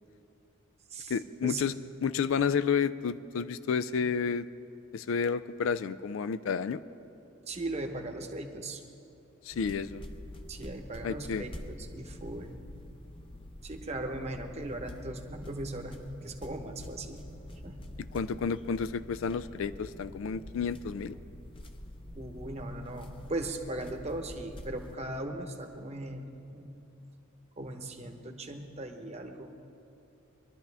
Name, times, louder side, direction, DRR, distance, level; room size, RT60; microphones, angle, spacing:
voice 1, 1.1-1.7 2.0-4.5 4.9-6.8 9.4-10.0 11.0-11.5 18.1-21.2, left 6 dB, 70° left, 14 dB, 0.4 m, -30 dB
voice 2, 7.5-8.8 10.5-12.6 13.6-17.3 17.6-17.8 22.1-26.7 27.6-29.5, right 2 dB, 30° right, 4 dB, 1.0 m, -38 dB
sound 1, 9.5-24.9, left 1 dB, 25° left, 0.7 m, -46 dB
22.5 x 11.5 x 3.4 m, 2.9 s
head